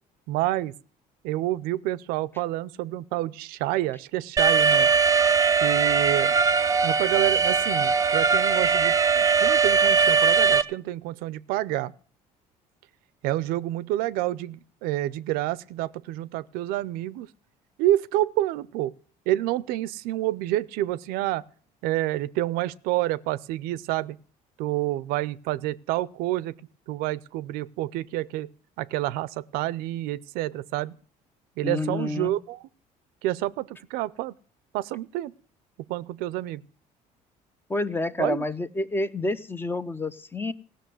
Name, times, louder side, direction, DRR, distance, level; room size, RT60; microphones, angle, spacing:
voice 1, 0.3-0.7 1.2-4.9 5.6-6.4 6.8-11.9 13.2-17.3 17.8-18.9 19.3-21.4 21.8-24.2 24.6-26.6 26.9-28.5 28.8-31.0 31.6-32.6 33.2-34.3 34.7-35.3 35.9-36.6 38.2-38.4, right 15 dB, 85° right, 0.5 m, -28 dB
Alarm, 4.4-10.6, right 5 dB, 25° right, 0.7 m, -20 dB
voice 2, 31.6-32.4 37.7-40.5, left 2 dB, 15° left, 0.7 m, -28 dB
16.0 x 6.6 x 9.2 m
cardioid pair, 115°, 15 cm